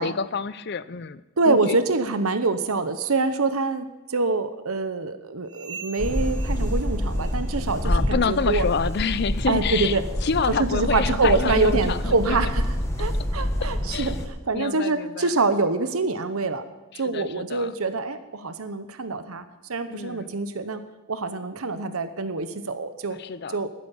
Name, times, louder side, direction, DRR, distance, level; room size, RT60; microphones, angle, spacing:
voice 1, 0.0-1.8 7.8-12.4 13.9-14.1 14.5-15.3 16.9-17.7 19.9-20.3 23.1-23.6, left 5 dB, 50° left, 16 dB, 0.5 m, -28 dB
voice 2, 1.4-8.7 9.5-10.0 10.6-12.6 13.0-16.6 17.0-19.4 19.7-20.8 21.1-23.2 23.5-23.7, right 3 dB, 80° right, 10 dB, 0.9 m, -25 dB
sound 1, 5.4-7.7 7.9-8.3 8.8-9.0 9.6-9.8 10.5-10.6 11.3-11.4, right 6 dB, 35° right, 2.4 m, -44 dB
sound 2, 6.0-14.3, equal, 15° left, 1.3 m, -27 dB
12.0 x 9.7 x 7.1 m, 1.1 s
head